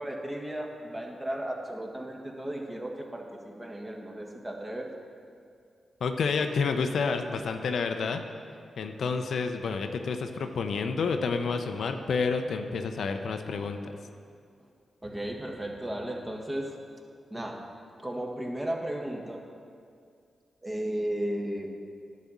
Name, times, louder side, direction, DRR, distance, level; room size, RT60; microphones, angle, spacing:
voice 1, 0.0-4.9 15.0-16.7 17.3-17.6 18.0-19.4 20.6-21.7, right 1 dB, 20° right, 0 dB, 1.6 m, -35 dB
voice 2, 6.0-8.2 8.8-13.9, left 5 dB, 75° left, 6 dB, 0.5 m, -29 dB
10.5 x 4.2 x 7.3 m, 2.3 s
supercardioid pair, 40°, 0 cm